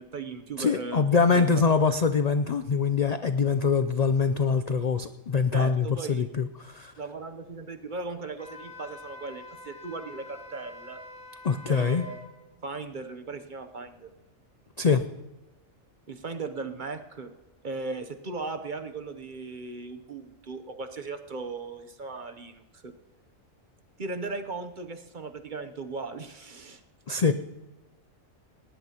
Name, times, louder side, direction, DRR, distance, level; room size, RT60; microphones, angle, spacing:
voice 1, 0.0-1.0 1.3-1.5 5.5-6.3 7.0-11.0 11.7-12.2 12.6-14.1 16.1-17.3 17.6-22.9 24.0-26.8, right 3 dB, 40° right, 7 dB, 0.9 m, -37 dB
voice 2, 0.6-6.9 11.4-12.0 14.8-15.0 27.1-27.3, left 5 dB, 65° left, 10 dB, 0.4 m, -24 dB
Wind instrument woodwind instrument, 8.4-12.3, left 2 dB, 5° left, 2.3 m, -46 dB
19.0 x 18.0 x 2.9 m, 1.0 s
omnidirectional pair, 1.4 m